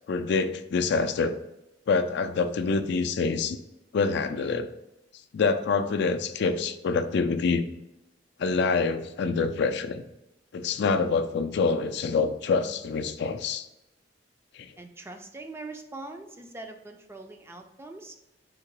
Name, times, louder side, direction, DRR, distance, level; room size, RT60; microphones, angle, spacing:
voice 1, 0.1-1.3 1.9-3.6 3.9-4.7 5.3-7.6 8.4-10.0 10.5-13.7 14.6-14.7, left 4 dB, 65° left, 8 dB, 0.4 m, -26 dB
voice 2, 14.8-18.2, right 2 dB, 15° right, 4 dB, 0.4 m, -42 dB
3.8 x 2.8 x 4.6 m, 0.90 s
head